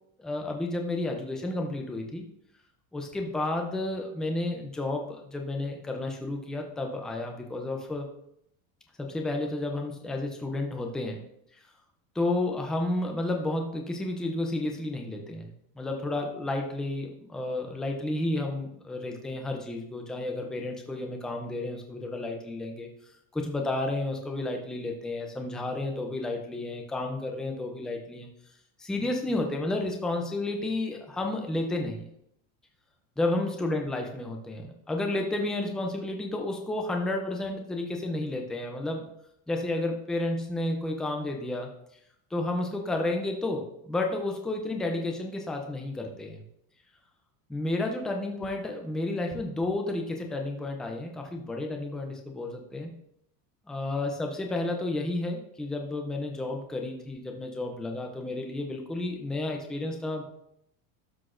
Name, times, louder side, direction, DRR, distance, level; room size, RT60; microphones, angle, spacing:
voice 1, 0.2-2.2 2.9-8.1 9.0-11.2 12.2-15.5 15.8-22.9 23.3-28.3 28.8-32.0 33.2-39.1 39.5-41.7 42.3-46.4 47.5-52.9 53.7-60.2, left 2 dB, ahead, 2 dB, 0.4 m, -31 dB
12.5 x 6.0 x 2.5 m, 0.74 s
cardioid pair, 170°, 41 cm